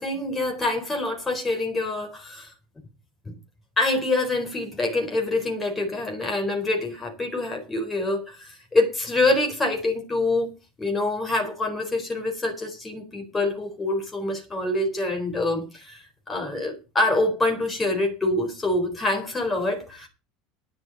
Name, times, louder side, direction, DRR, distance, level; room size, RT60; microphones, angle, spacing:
voice 1, 0.0-2.5 3.2-3.3 3.8-10.5 10.8-20.1, left 2 dB, 10° left, 4.1 m, -26 dB
11.5 x 11.0 x 5.3 m
cardioid pair, 175°, 0 cm